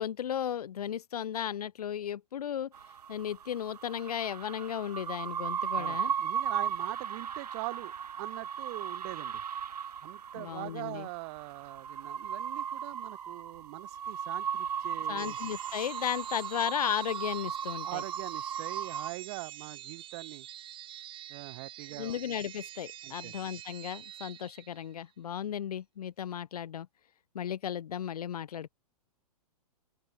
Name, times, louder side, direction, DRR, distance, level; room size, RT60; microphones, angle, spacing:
voice 1, 0.0-2.7 3.1-6.1 10.3-11.1 15.1-18.0 22.0-26.9 27.3-28.7, left 9 dB, 70° left, 1.2 m, -35 dB
sound 1, 2.7-19.1, right 8 dB, 75° right, 1.2 m, -37 dB
voice 2, 5.7-9.4 10.0-15.4 17.8-20.5 21.3-22.2 23.0-23.3, right 27 dB, 45° right, 5.2 m, -42 dB
sound 2, 15.2-25.0, right 12 dB, 25° right, 4.9 m, -47 dB
open air
hypercardioid pair, 125°, 20 cm